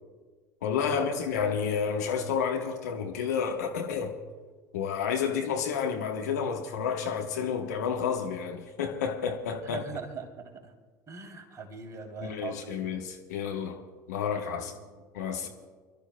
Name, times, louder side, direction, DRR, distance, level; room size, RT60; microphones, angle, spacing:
voice 1, 0.6-4.2 4.7-9.9 12.2-13.8 14.1-14.7 15.1-15.5, left 7 dB, 65° left, 1.3 m, -30 dB
voice 2, 9.6-10.7 11.1-12.6 14.6-15.0 15.4-15.5, right 5 dB, 35° right, 3.1 m, -41 dB
29.5 x 12.5 x 2.3 m
figure-of-eight pair, 65°, 10 cm